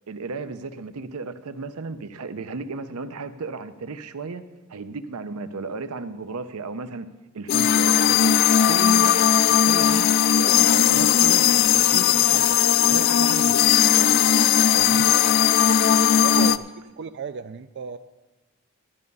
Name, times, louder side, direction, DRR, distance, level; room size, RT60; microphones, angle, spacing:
voice 1, 0.1-4.4 4.7-7.1 7.3-8.4 8.7-9.2 9.5-14.1 14.7-15.1 16.3-16.5, right 3 dB, 85° right, 11 dB, 0.7 m, -34 dB
sound 1, 7.5-16.6, left 9 dB, 45° left, 0.3 m, -18 dB
voice 2, 16.0-16.6 17.0-18.0, right 6 dB, 50° right, 10 dB, 0.3 m, -35 dB
13.0 x 9.5 x 5.4 m, 1.2 s
head